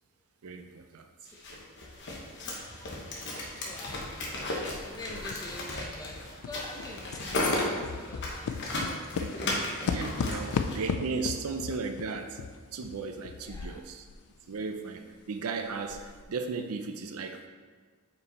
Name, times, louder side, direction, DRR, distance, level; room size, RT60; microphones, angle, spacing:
voice 1, 0.4-1.1 9.1-9.4 9.8-12.4 12.7-14.0 14.5-17.5, right 4 dB, 75° right, 6 dB, 0.5 m, -36 dB
sound 1, 1.4-10.8, left 2 dB, 55° left, 1.1 m, -35 dB
sound 2, 1.9-2.0 2.5-4.4 4.7-14.3 14.5-14.6 15.1-15.2 15.7-16.2, left 5 dB, 75° left, 0.4 m, -37 dB
voice 2, 2.4-4.0 4.8-9.6 10.3-10.5 13.4-13.8, left 1 dB, 15° left, 1 dB, 0.7 m, -46 dB
5.3 x 4.6 x 4.0 m, 1.5 s
head